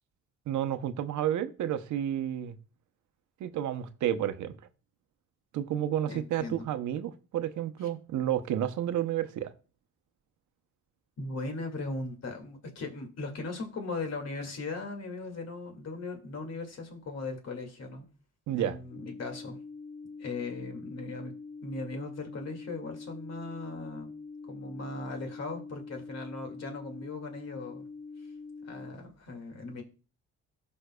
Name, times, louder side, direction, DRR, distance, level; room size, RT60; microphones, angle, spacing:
voice 1, 0.5-2.6 3.4-4.6 5.5-9.5 18.5-18.8, right 11 dB, 75° right, 0.8 m, -31 dB
voice 2, 6.1-6.7 11.2-18.1 18.6-19.6 20.2-21.3 21.6-24.1 24.4-27.9 28.7-29.8, left 3 dB, 55° left, 2.2 m, -38 dB
sound 1, 18.9-28.9, left 4 dB, 30° left, 3.1 m, -45 dB
13.0 x 5.4 x 2.3 m
cardioid pair, 90°, 30 cm